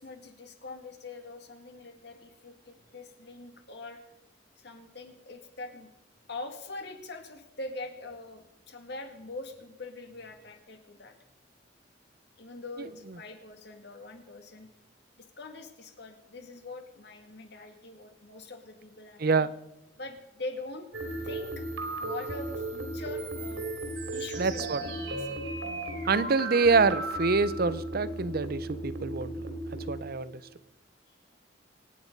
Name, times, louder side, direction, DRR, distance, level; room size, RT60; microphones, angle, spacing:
voice 1, 0.0-4.0 4.6-5.9 6.3-11.2 12.4-14.7 15.2-19.5 20.0-20.9 21.2-21.6 22.0-23.7 24.1-25.4 31.1-31.2, left 2 dB, 65° left, 5 dB, 2.2 m, -43 dB
sound 1, 20.9-30.2, right 2 dB, 85° right, 3.2 m, -35 dB
voice 2, 24.4-24.8 26.1-29.5 29.9-30.4, right 4 dB, 55° right, 16 dB, 0.7 m, -26 dB
25.0 x 9.5 x 5.3 m, 0.90 s
head